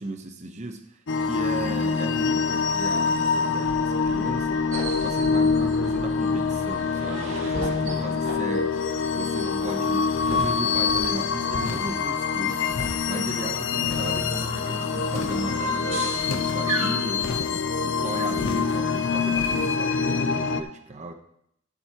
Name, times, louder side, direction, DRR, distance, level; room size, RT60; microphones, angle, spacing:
voice 1, 0.0-21.1, right 2 dB, 35° right, 5 dB, 0.9 m, -36 dB
sound 1, 1.1-20.6, left 5 dB, 60° left, 0.7 m, -25 dB
sound 2, 4.7-17.4, right 1 dB, 70° right, 2.1 m, -37 dB
sound 3, 10.2-11.1 11.5-12.1 12.6-13.3 13.8-14.6 14.9-15.6 16.2-16.7 17.1-17.8 18.3-18.8 19.3-19.7, left 2 dB, 80° left, 1.0 m, -36 dB
13.5 x 7.8 x 3.0 m, 0.72 s
head